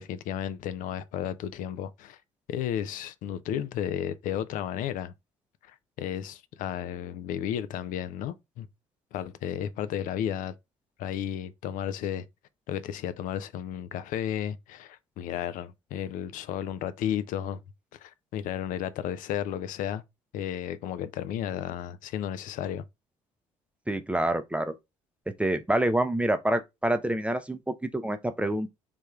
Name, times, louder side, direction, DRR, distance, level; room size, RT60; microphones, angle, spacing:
voice 1, 0.0-2.2 2.5-5.1 5.6-8.7 9.1-10.6 11.0-12.3 12.7-17.6 17.9-20.0 20.3-22.8, left 10 dB, 55° left, 0.4 m, -33 dB
voice 2, 23.9-24.7 25.4-28.7, right 1 dB, 5° right, 0.5 m, -27 dB
3.4 x 3.0 x 2.3 m
figure-of-eight pair, 50°, 16 cm